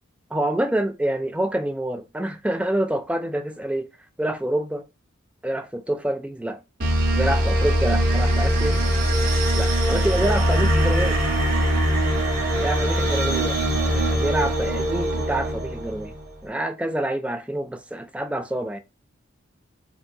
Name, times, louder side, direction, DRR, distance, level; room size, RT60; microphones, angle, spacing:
voice 1, 0.3-3.9 4.2-4.9 5.4-6.6 7.1-8.8 9.5-11.2 12.6-16.1 16.4-18.8, right 1 dB, 5° right, 0.3 m, -27 dB
sound 1, 6.8-16.2, equal, 45° right, 1.4 m, -22 dB
4.3 x 2.8 x 2.6 m
head